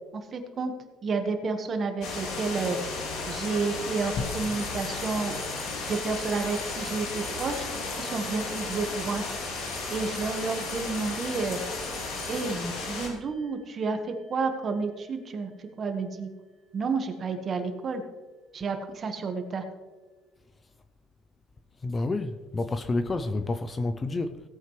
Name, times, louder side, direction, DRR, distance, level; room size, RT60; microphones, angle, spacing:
voice 1, 0.3-0.7 1.0-2.8 3.3-5.3 5.9-7.6 8.0-9.2 9.9-11.6 12.3-15.5 15.8-16.3 16.7-18.0 18.5-19.6, right 4 dB, 35° right, 1.4 m, -30 dB
sound 1, 2.0-13.1, left 3 dB, 75° left, 2.8 m, -34 dB
sound 2, 4.2-7.0, left 4 dB, 45° left, 1.1 m, -40 dB
sound 3, 4.2-14.8, right 2 dB, 5° right, 2.6 m, -46 dB
voice 2, 21.8-24.4, left 2 dB, 20° left, 0.5 m, -29 dB
17.0 x 8.9 x 3.2 m
cardioid pair, 130°, 0 cm